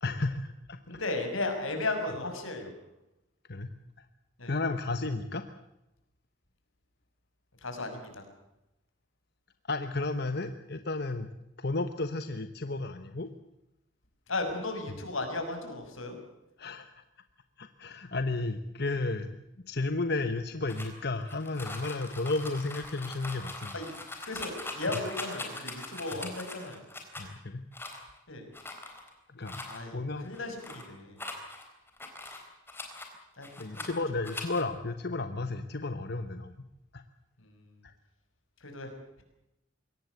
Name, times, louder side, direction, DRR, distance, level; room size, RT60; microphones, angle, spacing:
voice 1, 0.0-1.0 3.5-3.7 4.5-5.4 9.7-11.3 11.6-13.3 16.6-16.9 17.6-19.4 19.7-23.8 27.2-27.7 29.3-29.6 29.9-30.3 33.6-36.6 36.9-37.0 37.8-37.9, left 2 dB, 55° left, 9 dB, 1.1 m, -33 dB
voice 2, 0.9-2.7 4.4-4.5 7.6-8.2 14.3-16.1 23.7-23.9 24.2-26.8 28.3-28.5 29.7-31.2 33.4-33.5 33.8-33.9 37.4-37.7 38.6-38.9, left 2 dB, 90° left, 5 dB, 6.1 m, -35 dB
sound 1, 20.7-27.3 27.7-28.2 28.5-29.1 29.4-29.8 30.2-30.8 31.2-33.1 33.4-34.0 34.2-34.6, left 2 dB, 10° left, 3.8 m, -41 dB
23.0 x 18.0 x 8.1 m, 0.91 s
head